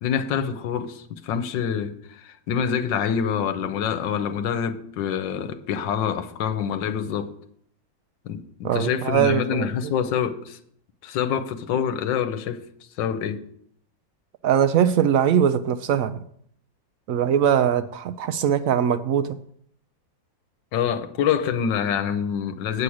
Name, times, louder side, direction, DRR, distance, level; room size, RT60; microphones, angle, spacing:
voice 1, 0.0-7.3 8.2-10.6 11.0-12.6 13.0-13.4 20.7-22.8, left 8 dB, 80° left, 1.5 m, -26 dB
voice 2, 8.6-9.9 14.4-16.2 17.1-19.3, right 9 dB, 80° right, 0.7 m, -21 dB
8.4 x 7.5 x 6.3 m
omnidirectional pair, 2.0 m